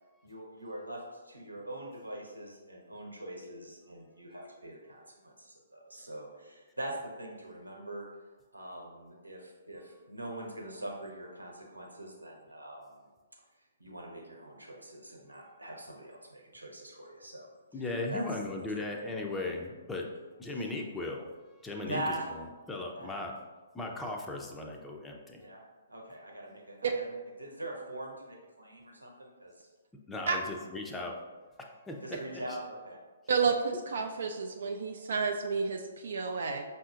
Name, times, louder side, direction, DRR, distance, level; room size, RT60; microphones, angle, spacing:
voice 1, 0.2-8.1 8.5-13.1 13.8-17.5 18.1-18.2 18.6-18.7 20.5-20.7 21.8-22.3 23.0-23.1 25.4-25.6 25.9-29.7 32.0-33.0, right 1 dB, 90° right, -1 dB, 0.9 m, -43 dB
voice 2, 17.7-20.1 20.4-23.4 23.7-25.5 30.1-31.2 31.6-32.0 32.3-32.6, left 2 dB, 10° left, 0 dB, 0.5 m, -37 dB
voice 3, 33.3-36.6, right 5 dB, 60° right, 3 dB, 0.3 m, -30 dB
5.4 x 2.7 x 2.4 m, 1.3 s
figure-of-eight pair, 125°, 0 cm